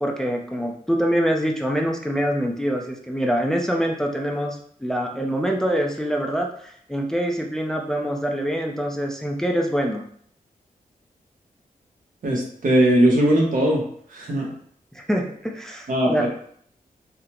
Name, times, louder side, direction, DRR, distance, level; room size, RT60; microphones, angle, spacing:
voice 1, 0.0-10.0 14.9-16.3, equal, 5° left, 1 dB, 0.4 m, -25 dB
voice 2, 12.2-13.8 14.1-14.5 15.9-16.3, right 1 dB, 65° right, -1 dB, 0.9 m, -19 dB
3.7 x 2.0 x 2.8 m, 0.63 s
cardioid pair, 85°, 15 cm